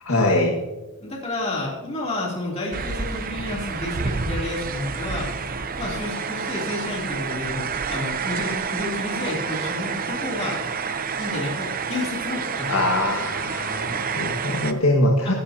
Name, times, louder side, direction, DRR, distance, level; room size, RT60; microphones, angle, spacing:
voice 1, 0.0-0.6 12.7-15.3, left 1 dB, 70° left, -1 dB, 2.0 m, -22 dB
voice 2, 1.0-5.3 5.8-10.6 11.2-12.7 15.2-15.3, left 2 dB, 30° left, -4 dB, 3.2 m, -30 dB
sound 1, 2.7-14.7, right 5 dB, 40° right, 0.8 m, -29 dB
25.5 x 13.0 x 2.9 m, 1.1 s
head